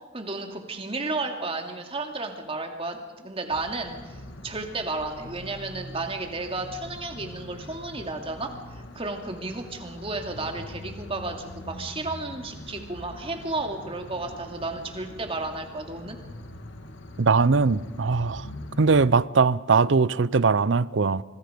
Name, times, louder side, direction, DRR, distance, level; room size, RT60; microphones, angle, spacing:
voice 1, 0.1-16.2, right 2 dB, 30° right, 2.5 m, -33 dB
sound 1, 3.5-19.1, left 1 dB, 85° left, 2.0 m, -43 dB
voice 2, 17.2-18.5 18.8-21.2, right 4 dB, 75° right, 0.6 m, -21 dB
26.0 x 24.0 x 5.2 m
head